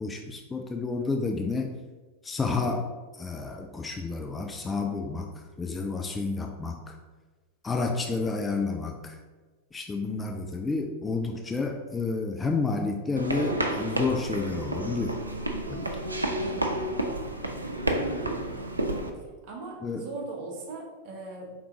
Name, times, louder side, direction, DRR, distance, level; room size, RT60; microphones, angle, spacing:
voice 1, 0.0-1.7 2.2-2.9 3.1-5.3 5.6-6.9 7.6-9.2 9.7-15.2 15.7-15.9 19.8-20.0, left 3 dB, 15° left, 3 dB, 0.4 m, -30 dB
sound 1, 13.2-19.1, right 1 dB, 80° right, 0.4 m, -30 dB
voice 2, 16.4-16.8 17.9-18.2 19.1-21.5, right 2 dB, 45° right, -1 dB, 1.1 m, -40 dB
4.7 x 3.6 x 3.0 m, 1.3 s
figure-of-eight pair, 90°, 0 cm